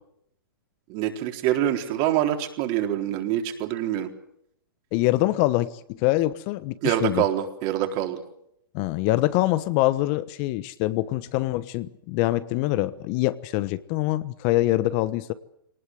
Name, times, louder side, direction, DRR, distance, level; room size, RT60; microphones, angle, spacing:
voice 1, 0.9-4.1 6.8-8.2, right 12 dB, 40° right, 5 dB, 4.0 m, -25 dB
voice 2, 4.9-7.2 8.7-15.3, left 17 dB, 40° left, 15 dB, 1.2 m, -24 dB
24.5 x 19.0 x 7.8 m, 0.74 s
hypercardioid pair, 120°, 11 cm